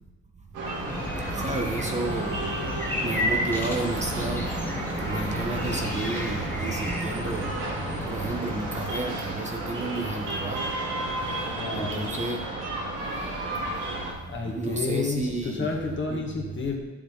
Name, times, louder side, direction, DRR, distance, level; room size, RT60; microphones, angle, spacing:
sound 1, 0.5-14.1, right 1 dB, 85° right, 2.3 m, -32 dB
sound 2, 0.8-8.9, left 1 dB, 5° left, 1.4 m, -32 dB
voice 1, 1.4-2.3 2.8-4.5 5.0-7.5 8.0-10.6 11.7-12.4 14.6-15.8 16.1-16.2, right 2 dB, 25° right, 2 dB, 1.1 m, -31 dB
voice 2, 11.6-12.1 14.3-16.8, left 4 dB, 40° left, 0 dB, 2.0 m, -30 dB
9.2 x 7.1 x 4.0 m, 1.1 s
cardioid pair, 90°, 30 cm